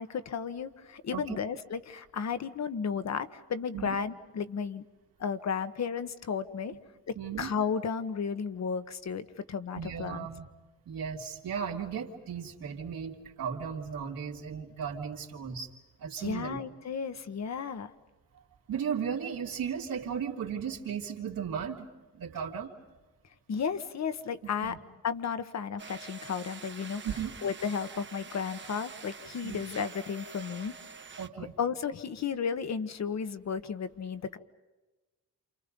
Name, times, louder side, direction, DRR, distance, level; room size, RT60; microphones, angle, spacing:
voice 1, 0.0-4.8 5.2-6.7 7.1-10.3 16.2-17.9 23.5-24.8 25.0-27.0 27.4-30.7 31.6-34.4, left 6 dB, 50° left, 11 dB, 1.4 m, -33 dB
voice 2, 7.2-7.5 9.7-10.5 10.9-15.7 16.0-16.6 18.7-21.9 22.1-22.7 24.6-24.8 27.0-27.3 29.4-29.6 31.2-31.6, right 7 dB, 85° right, -2 dB, 3.0 m, -36 dB
sound 1, 25.8-31.3, right 5 dB, 35° right, 1.1 m, -46 dB
28.5 x 28.5 x 5.4 m, 1.2 s
wide cardioid pair, 130°, 34 cm